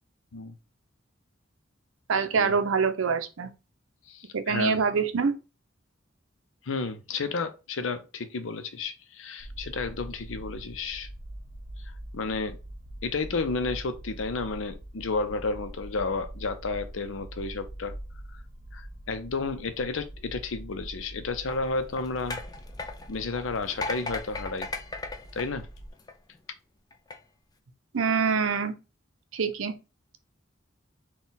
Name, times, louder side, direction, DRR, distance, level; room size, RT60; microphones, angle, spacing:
voice 1, 2.1-3.5 4.3-5.3 27.9-28.7 29.3-29.8, right 5 dB, 90° right, 0.6 m, -25 dB
voice 2, 4.1-4.8 6.6-11.1 12.1-12.6 13.0-18.0 18.3-18.4 18.7-22.4 23.1-24.7 25.3-25.7, left 4 dB, 75° left, 0.6 m, -32 dB
sound 1, 9.4-25.9, right 1 dB, 40° right, 0.8 m, -43 dB
sound 2, 21.4-26.4 26.9-27.2, left 3 dB, 20° left, 0.4 m, -37 dB
4.0 x 2.3 x 3.9 m
head